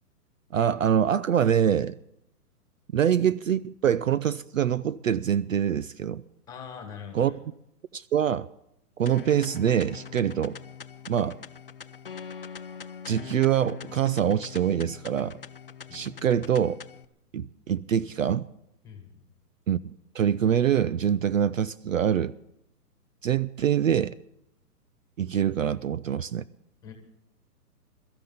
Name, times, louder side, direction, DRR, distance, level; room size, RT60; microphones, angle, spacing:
voice 1, 0.5-2.0 2.9-6.2 7.1-7.4 7.9-8.5 9.0-10.6 11.1-11.4 13.1-15.4 15.9-16.8 17.3-18.4 19.7-22.3 23.2-24.1 25.2-26.4, right 9 dB, 55° right, 0.5 m, -25 dB
voice 2, 6.5-7.4 15.9-16.0 18.8-19.2 26.8-26.9, left 7 dB, 10° left, 1.6 m, -42 dB
sound 1, 9.1-17.1, left 7 dB, 35° left, 0.5 m, -42 dB
22.5 x 13.5 x 3.9 m
hypercardioid pair, 170°, 48 cm